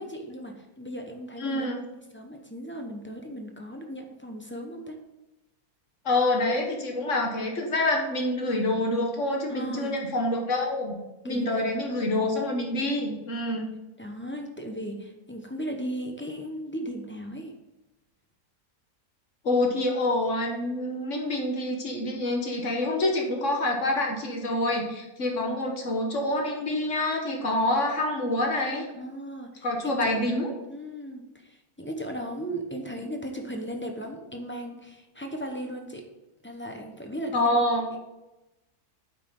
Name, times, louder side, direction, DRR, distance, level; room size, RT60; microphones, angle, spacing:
voice 1, 0.0-1.7 2.1-5.0 9.5-10.0 11.2-11.6 14.0-17.6 28.9-36.1 36.4-37.5, equal, 10° left, 3 dB, 0.7 m, -37 dB
voice 2, 1.4-1.8 6.0-11.0 11.2-13.7 19.4-28.9 29.6-30.5 37.3-37.9, left 1 dB, 55° left, 1 dB, 1.5 m, -27 dB
8.6 x 5.8 x 3.8 m, 1.0 s
omnidirectional pair, 1.7 m